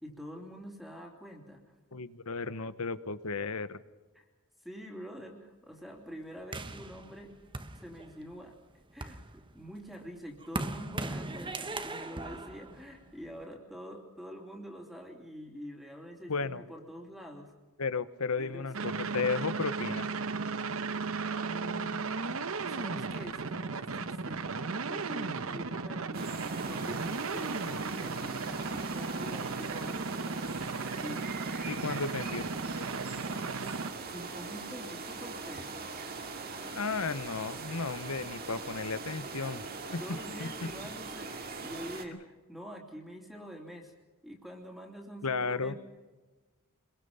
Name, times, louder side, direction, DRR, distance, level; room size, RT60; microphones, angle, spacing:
voice 1, 0.0-1.6 4.1-4.2 4.6-7.3 7.7-8.6 8.9-17.5 18.4-18.9 21.0-21.1 21.4-22.1 22.7-24.6 24.9-30.0 31.0-31.4 34.0-36.1 40.0-43.9 44.2-45.8, equal, ahead, 1 dB, 3.1 m, -46 dB
voice 2, 1.9-3.8 16.3-16.6 17.8-20.1 31.7-32.5 36.7-39.6 39.9-40.0 40.4-40.5 45.2-45.7, left 4 dB, 75° left, 14 dB, 1.0 m, -34 dB
sound 1, 6.5-8.3 8.8-13.4, right 2 dB, 20° right, 1.2 m, -39 dB
sound 2, 18.7-33.9, right 4 dB, 65° right, 1.0 m, -35 dB
sound 3, 26.1-42.0, right 4 dB, 45° right, 2.3 m, -41 dB
25.5 x 22.5 x 5.6 m, 1.2 s
head